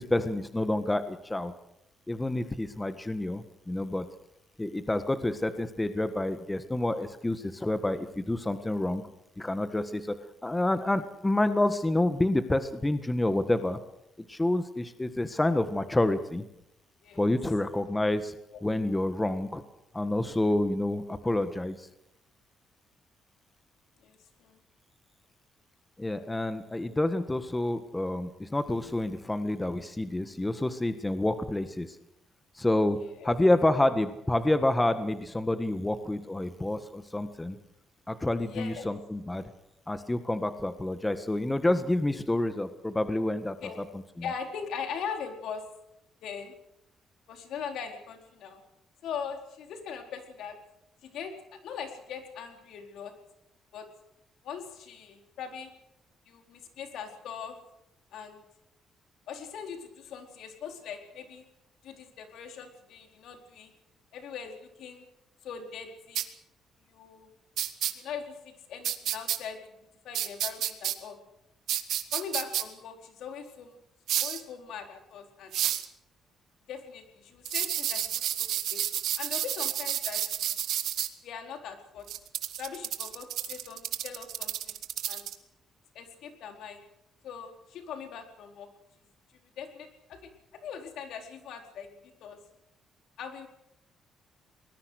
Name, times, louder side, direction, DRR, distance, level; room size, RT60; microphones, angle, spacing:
voice 1, 0.0-1.5 2.1-4.1 4.6-9.0 9.4-10.2 10.4-13.8 14.2-16.4 17.2-18.3 18.6-19.6 19.9-21.9 26.0-31.9 32.6-33.0 33.2-37.6 38.1-39.5 39.9-43.5 44.2-44.3, left 1 dB, 15° left, 10 dB, 1.6 m, -28 dB
voice 2, 24.0-24.6 33.0-33.3 38.5-38.9 43.6-43.8 44.2-45.6 46.2-46.5 47.3-48.6 49.0-50.6 51.0-53.1 53.7-53.9 54.4-55.7 56.3-57.6 58.1-58.4 59.3-61.4 61.8-63.7 64.1-65.0 65.4-66.3 66.9-67.3 67.9-69.6 70.0-71.2 72.1-73.8 74.2-75.6 76.7-78.8 79.2-80.5 81.2-82.1 82.6-84.8 85.1-85.3 85.9-86.8 87.2-88.7 89.6-90.3 90.6-92.4 93.2-93.5, left 7 dB, 80° left, 5 dB, 4.4 m, -41 dB
sound 1, 66.2-66.3 67.6-67.9 68.8-69.4 70.1-71.0 71.7-72.6 74.1-74.4 75.5-75.9 77.5-81.1 82.1-85.4, right 11 dB, 75° right, 1.9 m, -30 dB
23.5 x 20.5 x 6.6 m, 0.82 s
cardioid pair, 90°, 0 cm